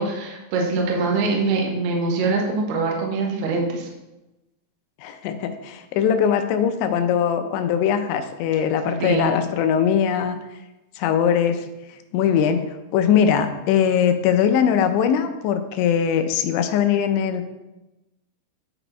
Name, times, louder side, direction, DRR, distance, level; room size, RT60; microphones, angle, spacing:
voice 1, 0.0-3.9 9.0-9.3, right 3 dB, 70° right, 0 dB, 2.8 m, -23 dB
voice 2, 5.0-10.4 11.0-11.7 12.1-12.7 12.9-17.5, left 8 dB, 85° left, 8 dB, 2.9 m, -21 dB
10.0 x 4.3 x 4.4 m, 1.0 s
omnidirectional pair, 5.4 m